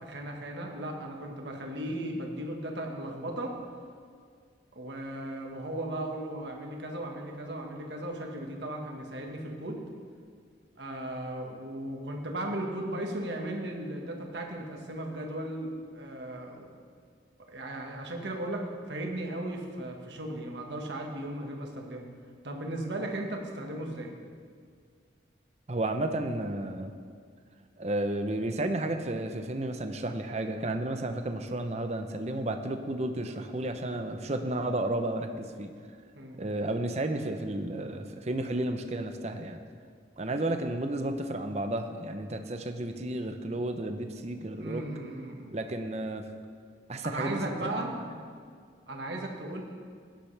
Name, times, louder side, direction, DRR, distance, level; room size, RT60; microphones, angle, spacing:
voice 1, 0.0-3.6 4.7-9.8 10.8-16.7 17.5-22.1 22.4-24.1 36.1-36.4 44.6-45.6 47.0-47.9 48.9-49.6, right 1 dB, 75° right, 1 dB, 1.6 m, -36 dB
voice 2, 25.7-26.9 27.8-35.7 36.4-39.6 40.2-44.8 45.5-46.2 46.9-47.9, right 1 dB, 35° right, 6 dB, 0.7 m, -32 dB
17.0 x 10.0 x 3.4 m, 2.1 s
head